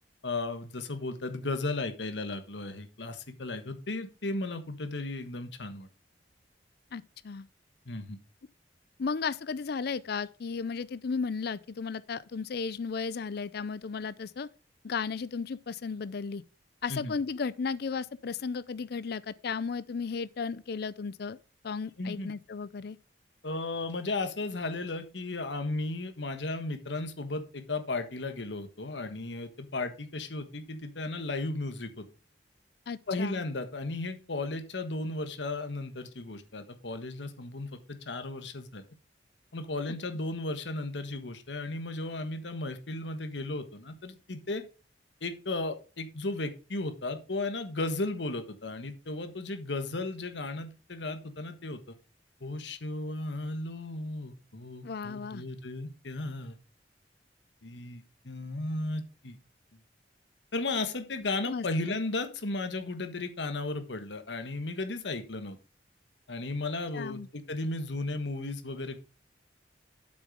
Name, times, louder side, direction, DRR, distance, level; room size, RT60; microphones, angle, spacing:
voice 1, 0.2-5.9 7.8-8.2 16.9-17.1 22.0-22.3 23.4-32.0 33.1-38.8 39.5-44.6 45.2-51.9 52.4-56.6 57.6-59.4 59.7-59.8 60.5-65.6 66.3-69.0, left 2 dB, 75° left, 1.3 m, -35 dB
voice 2, 6.9-7.5 9.0-14.5 14.8-16.4 16.8-21.4 21.6-23.0 32.9-33.4 54.8-55.4 61.5-62.0 66.9-67.3, left 5 dB, 60° left, 0.5 m, -34 dB
8.1 x 6.3 x 5.0 m
head